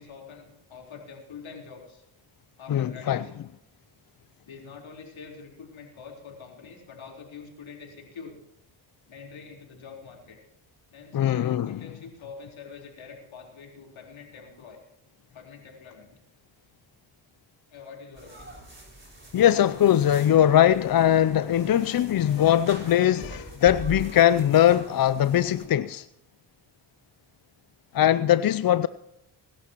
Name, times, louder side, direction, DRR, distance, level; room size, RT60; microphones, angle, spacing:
voice 1, 0.0-2.0 2.6-3.5 4.5-8.4 9.1-10.4 10.9-14.8 15.3-16.2 17.7-18.6, left 5 dB, 70° left, 4.1 m, -45 dB
voice 2, 2.7-3.2 11.1-11.8 19.3-26.1 27.9-28.9, left 11 dB, 45° left, 0.5 m, -21 dB
sound 1, 18.2-25.7, right 1 dB, 25° right, 5.6 m, -43 dB
21.0 x 12.0 x 3.0 m
supercardioid pair, 50°, 49 cm